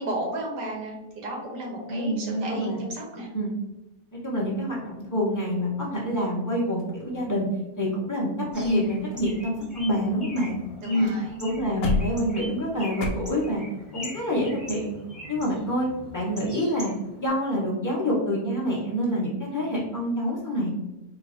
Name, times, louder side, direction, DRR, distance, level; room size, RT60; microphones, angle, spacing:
voice 1, 0.0-3.3 10.8-11.4, right 1 dB, 90° right, -1 dB, 1.6 m, -33 dB
voice 2, 1.9-2.8 3.3-3.5 4.1-7.5 7.8-10.6 10.8-11.1 11.4-13.6 13.9-14.9 15.3-15.9 16.1-20.7, equal, 25° left, -6 dB, 0.4 m, -27 dB
sound 1, 6.8-7.6 8.2-8.3 8.5-8.8 9.1-10.7 11.0-11.1 11.4-13.1, left 3 dB, 70° left, 1.0 m, -33 dB
Bird, 8.5-17.3, left 1 dB, ahead, 0.9 m, -43 dB
3.9 x 2.5 x 2.5 m, 0.99 s
omnidirectional pair, 1.8 m